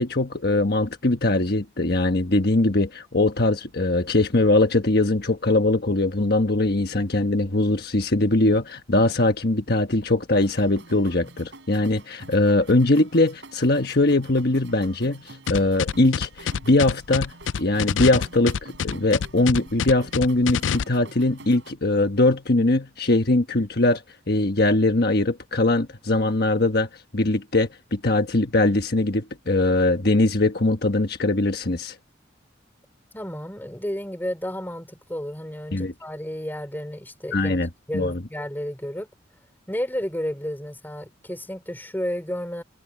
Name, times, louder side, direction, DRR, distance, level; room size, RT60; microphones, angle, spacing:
voice 1, 0.0-17.3 17.6-26.9 27.1-31.9 35.7-35.9 37.3-38.2, left 2 dB, 55° left, 1.3 m, -21 dB
sound 1, 10.4-21.7, right 2 dB, 70° right, 6.3 m, -47 dB
sound 2, 15.5-20.8, left 7 dB, 85° left, 0.4 m, -26 dB
voice 2, 33.1-37.6 37.9-39.1 39.7-42.6, equal, 10° left, 4.5 m, -32 dB
head